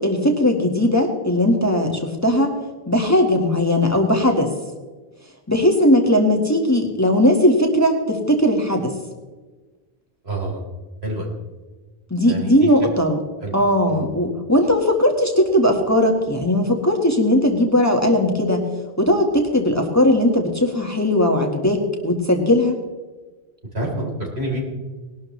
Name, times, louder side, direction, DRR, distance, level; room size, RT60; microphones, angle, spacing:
voice 1, 0.0-2.5 2.9-4.5 5.5-8.9 12.1-13.2 13.5-18.6 19.0-22.8, left 1 dB, 15° left, 2 dB, 1.5 m, -18 dB
voice 2, 10.2-10.6 11.0-11.3 12.2-12.7 13.4-13.6 13.9-14.0 23.7-24.6, right 1 dB, 75° right, -2 dB, 4.0 m, -27 dB
19.5 x 12.0 x 3.2 m, 1.3 s
omnidirectional pair, 1.1 m